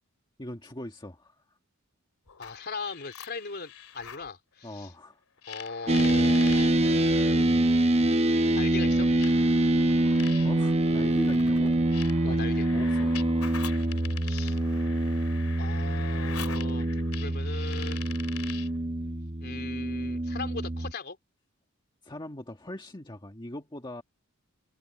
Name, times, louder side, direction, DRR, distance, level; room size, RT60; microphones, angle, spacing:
voice 1, 0.4-1.4 4.6-5.2 10.4-13.2 22.0-24.0, left 1 dB, 20° left, 1.8 m, -41 dB
sound 1, 2.3-4.3 5.4-6.7 7.8-7.9 9.2-18.8, left 9 dB, 85° left, 2.7 m, -44 dB
voice 2, 2.4-4.9 5.5-7.6 8.5-9.1 12.2-12.7 14.2-14.6 15.6-16.9 17.2-18.1 19.4-21.2, left 4 dB, 50° left, 3.6 m, -39 dB
sound 2, 5.9-20.9, right 1 dB, 30° right, 0.9 m, -25 dB
head